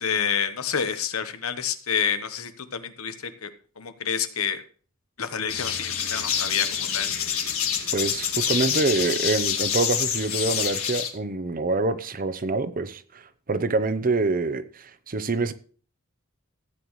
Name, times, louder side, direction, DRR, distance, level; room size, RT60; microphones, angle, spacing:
voice 1, 0.0-3.5 3.8-4.6 5.2-7.1, left 7 dB, 90° left, 1.1 m, -28 dB
sound 1, 5.5-11.1, left 8 dB, 75° left, 1.9 m, -27 dB
voice 2, 7.9-13.2 13.5-15.5, right 3 dB, 40° right, 0.7 m, -26 dB
15.0 x 8.6 x 3.2 m
head